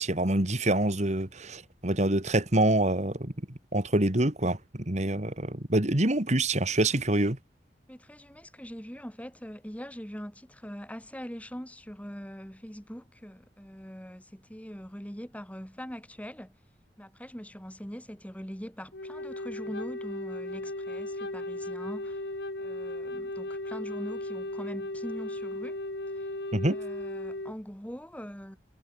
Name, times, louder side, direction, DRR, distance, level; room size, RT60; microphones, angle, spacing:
voice 1, 0.0-3.3 3.7-7.4 26.5-26.8, right 1 dB, 40° right, 2.6 m, -26 dB
voice 2, 7.9-16.6 17.0-22.2 22.6-25.8 26.2-26.3 26.7-28.6, equal, 10° left, 6.0 m, -42 dB
Wind instrument woodwind instrument, 18.9-27.5, left 1 dB, 70° left, 2.3 m, -36 dB
head